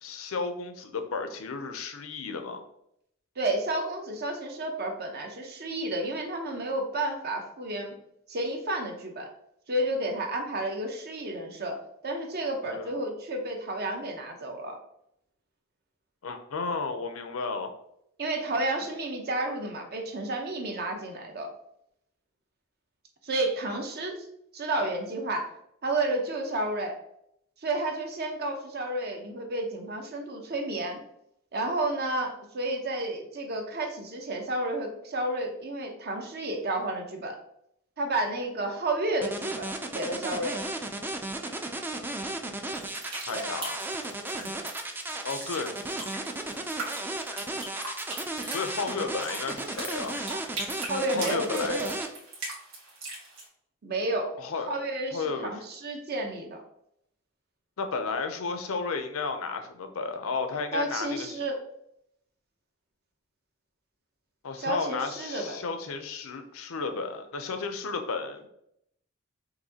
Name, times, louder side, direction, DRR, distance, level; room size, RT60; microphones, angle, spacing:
voice 1, 0.0-2.6 12.6-12.9 16.2-17.7 43.3-43.8 45.2-45.8 48.5-50.3 51.1-51.9 54.4-54.7 55.1-55.6 57.8-61.4 64.4-68.5, left 4 dB, 80° left, 7 dB, 0.6 m, -33 dB
voice 2, 3.4-7.9 8.3-9.3 9.7-11.8 12.0-14.8 18.2-21.5 23.2-24.2 24.5-25.5 25.8-26.9 27.6-31.0 31.5-37.4 38.0-40.6 43.3-43.5 44.4-44.6 50.8-51.9 53.8-54.3 54.7-56.6 60.7-61.6 64.6-65.6, right 2 dB, 50° right, 3 dB, 0.8 m, -31 dB
sound 1, 39.2-52.1, right 2 dB, 10° right, 0.4 m, -34 dB
sound 2, 42.7-53.5, right 2 dB, 75° right, 1.6 m, -41 dB
5.8 x 2.6 x 2.8 m, 0.75 s
head